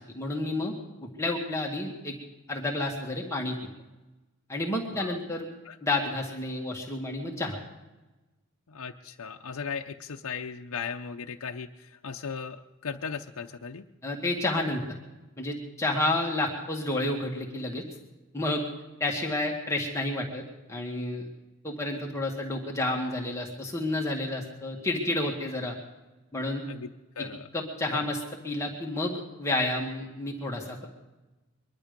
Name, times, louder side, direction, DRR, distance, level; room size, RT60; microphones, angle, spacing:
voice 1, 0.1-0.7 1.0-2.2 2.5-3.6 4.5-5.5 5.8-7.6 14.0-14.8 15.4-17.8 18.3-18.7 19.0-20.4 20.7-21.3 21.6-25.8 26.3-26.6 27.5-30.9, left 2 dB, 15° left, -1 dB, 1.8 m, -30 dB
voice 2, 8.7-13.8 26.7-26.9 27.2-27.5 27.9-28.1, left 6 dB, 90° left, 3 dB, 0.7 m, -37 dB
23.0 x 11.5 x 5.2 m, 1.1 s
head